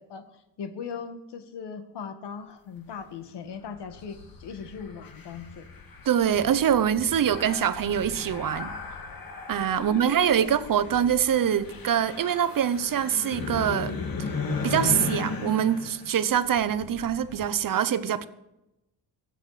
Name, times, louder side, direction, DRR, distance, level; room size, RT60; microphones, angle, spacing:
voice 1, 0.0-5.7 9.8-11.0, left 6 dB, 75° left, 1.8 m, -39 dB
sound 1, 3.6-17.5, left 4 dB, 55° left, 2.4 m, -36 dB
voice 2, 6.1-8.7 9.5-13.9 14.6-18.3, right 9 dB, 50° right, 0.9 m, -24 dB
23.0 x 7.9 x 5.0 m
cardioid pair, 115°, 42 cm